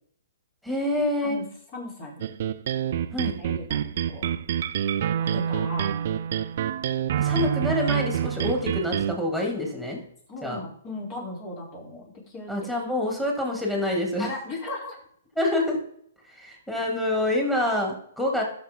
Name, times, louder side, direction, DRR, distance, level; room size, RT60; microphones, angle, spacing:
voice 1, 0.6-1.4 3.1-3.3 7.2-10.0 10.4-10.6 12.5-14.3 15.3-15.8 16.4-18.4, left 1 dB, 5° left, -1 dB, 3.2 m, -26 dB
voice 2, 1.7-2.3 3.4-4.4 5.1-5.9 10.3-12.5 14.2-15.0, left 2 dB, 35° left, -2 dB, 4.1 m, -37 dB
sound 1, 2.2-9.1, right 10 dB, 55° right, 0.5 m, -27 dB
12.5 x 6.7 x 3.9 m, 0.64 s
hypercardioid pair, 130°, 0 cm